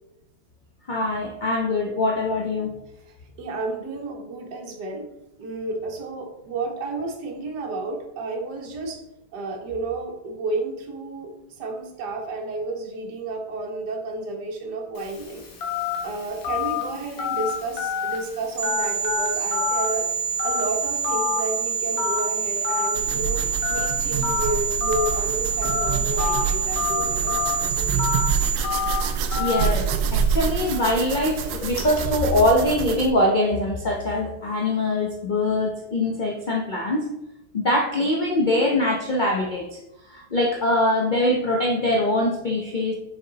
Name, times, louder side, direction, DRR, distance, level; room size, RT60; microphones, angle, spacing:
voice 1, 0.9-2.7 29.4-37.0 37.5-39.8 40.1-42.9, left 1 dB, 40° left, -1 dB, 0.6 m, -23 dB
voice 2, 3.0-5.1 5.4-9.0 9.3-15.4 16.0-20.1 20.4-23.4 23.7-28.2, right 2 dB, 65° right, 0 dB, 1.7 m, -31 dB
Telephone, 15.0-32.0, left 7 dB, 70° left, 1.9 m, -31 dB
sound 1, 18.6-28.6, right 6 dB, 45° right, 0.6 m, -27 dB
sound 2, 22.9-33.1, right 6 dB, 80° right, 1.3 m, -27 dB
6.5 x 4.7 x 4.0 m, 0.89 s
omnidirectional pair, 2.0 m